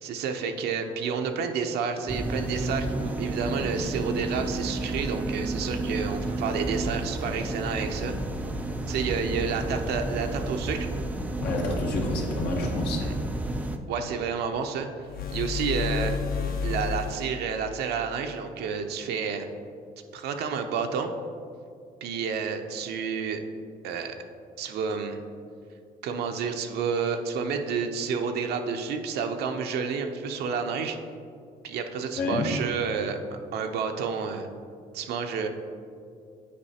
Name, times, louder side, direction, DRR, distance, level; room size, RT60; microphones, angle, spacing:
voice 1, 0.0-8.1 8.9-10.9 13.0-13.1 13.9-14.9 15.3-16.2 16.6-19.5 20.1-21.1 22.0-23.4 23.8-24.1 24.6-25.2 26.0-31.0 31.6-33.2 33.5-34.5 34.9-35.5, right 6 dB, 70° right, 5 dB, 0.5 m, -30 dB
sound 1, 2.1-13.8, right 2 dB, 10° right, 0.3 m, -31 dB
voice 2, 11.4-13.1 32.2-32.5, left 2 dB, 80° left, -1 dB, 1.1 m, -29 dB
sound 2, 15.0-17.4, left 5 dB, 60° left, 0.6 m, -30 dB
8.5 x 4.8 x 2.8 m, 2.4 s
cardioid pair, 110°, 17 cm